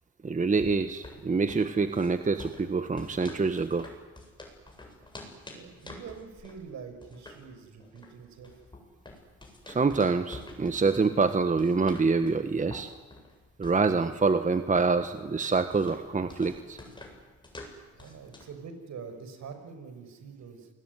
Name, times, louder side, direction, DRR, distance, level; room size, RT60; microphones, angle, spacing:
voice 1, 0.2-3.9 9.7-12.9 13.6-16.8, right 4 dB, 25° right, 9 dB, 1.5 m, -26 dB
sound 1, 0.8-18.6, left 2 dB, 15° left, 8.0 m, -48 dB
voice 2, 5.2-8.5 17.9-20.7, right 5 dB, 65° right, 8 dB, 5.9 m, -45 dB
29.0 x 21.5 x 9.7 m, 1.3 s
cardioid pair, 90°, 30 cm